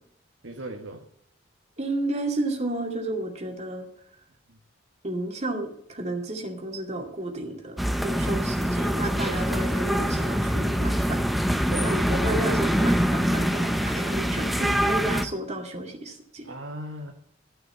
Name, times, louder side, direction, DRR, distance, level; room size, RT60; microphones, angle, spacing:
voice 1, 0.4-1.0 4.5-4.6 9.2-9.4 11.7-12.0 16.4-17.1, right 1 dB, 70° right, 2 dB, 1.5 m, -37 dB
voice 2, 1.8-3.9 5.0-11.2 11.8-16.5, right 2 dB, 35° right, 2 dB, 2.4 m, -32 dB
sound 1, 7.8-15.3, equal, ahead, 0.7 m, -24 dB
13.0 x 6.2 x 8.1 m, 0.72 s
head